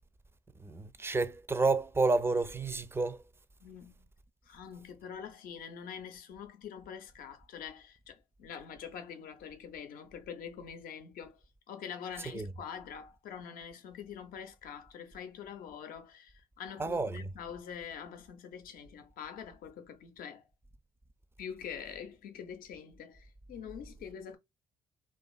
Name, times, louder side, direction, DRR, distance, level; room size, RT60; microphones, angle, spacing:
voice 1, 0.6-3.2 12.3-12.5 16.8-17.2, right 3 dB, 15° right, 0.4 m, -30 dB
voice 2, 3.6-4.1 4.4-20.4 21.4-24.4, left 7 dB, 65° left, 0.6 m, -45 dB
2.5 x 2.4 x 2.3 m
hypercardioid pair, 45°, 16 cm